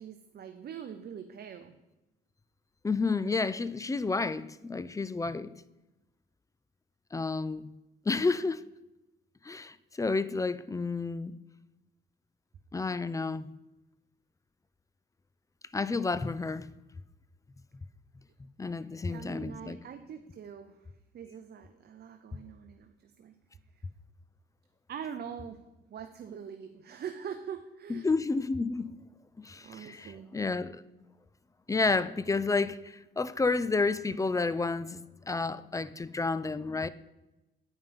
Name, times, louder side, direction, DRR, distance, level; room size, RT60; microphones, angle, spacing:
voice 1, 0.0-1.7 19.1-23.4 23.7-23.8 24.9-25.6 25.9-28.1 29.6-30.3, right 8 dB, 55° right, 0.7 m, -43 dB
voice 2, 2.8-5.5 7.1-7.7 8.1-8.6 9.4-11.4 12.7-13.5 15.7-16.7 18.6-19.8 27.9-28.9 29.4-30.8 31.7-35.0 35.3-36.9, left 3 dB, 15° left, 0.4 m, -30 dB
9.1 x 5.5 x 5.3 m
cardioid pair, 90°, 20 cm